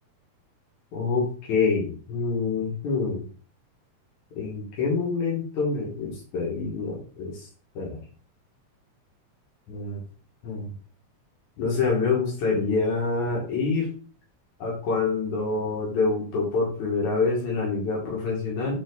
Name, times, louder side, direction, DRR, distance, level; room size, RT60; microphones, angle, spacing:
voice 1, 0.9-3.2 4.4-7.5 7.8-8.0 9.7-10.0 10.4-10.7 11.6-13.9 14.6-18.8, left 4 dB, 70° left, -4 dB, 3.6 m, -26 dB
7.5 x 4.5 x 4.1 m, 0.39 s
omnidirectional pair, 3.5 m